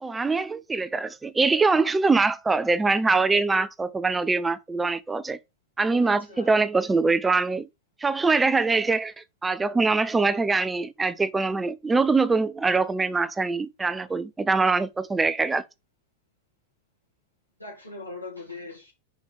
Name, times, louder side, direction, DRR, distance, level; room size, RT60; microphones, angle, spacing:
voice 1, 0.0-5.4 5.8-7.7 8.0-15.6, right 3 dB, 10° right, 0.4 m, -23 dB
voice 2, 6.0-6.5 17.6-18.9, left 3 dB, 90° left, 3.2 m, -40 dB
5.2 x 5.0 x 4.9 m
figure-of-eight pair, 90°, 0 cm